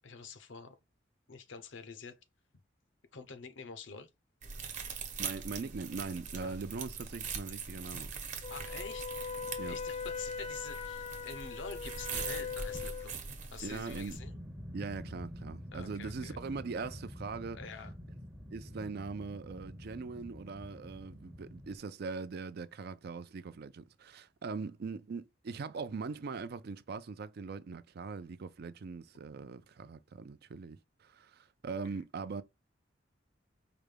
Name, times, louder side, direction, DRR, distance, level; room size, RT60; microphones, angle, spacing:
voice 1, 0.0-0.8 1.3-2.2 3.1-4.1 6.4-6.6 8.5-9.1 9.7-13.2 13.5-14.3 15.7-16.4 17.5-17.9 31.9-32.0, left 5 dB, 80° left, 0.7 m, -46 dB
sound 1, 4.4-14.2, right 5 dB, 40° right, 1.0 m, -42 dB
voice 2, 5.2-8.1 9.6-9.8 13.6-14.2 14.7-17.6 18.5-32.4, right 4 dB, 55° right, 0.4 m, -41 dB
Wind instrument woodwind instrument, 8.4-13.1, left 6 dB, 35° left, 0.5 m, -40 dB
sound 2, 14.1-21.8, equal, 5° right, 0.6 m, -47 dB
4.9 x 2.2 x 3.2 m
head